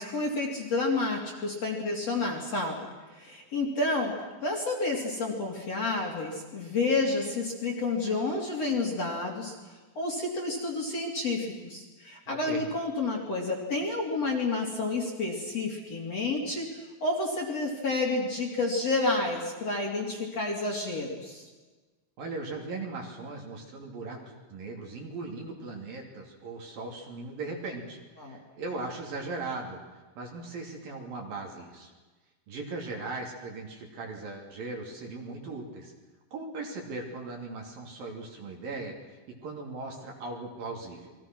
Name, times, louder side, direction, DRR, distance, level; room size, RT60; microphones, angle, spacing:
voice 1, 0.0-4.2 4.4-9.5 10.0-21.5 28.2-28.4, left 3 dB, 35° left, -1 dB, 3.5 m, -30 dB
voice 2, 12.3-12.6 22.2-29.8 30.2-31.9 32.5-35.9 36.3-38.9 39.4-41.1, right 3 dB, 50° right, 1 dB, 4.3 m, -38 dB
29.5 x 22.5 x 6.2 m, 1.3 s
omnidirectional pair, 5.6 m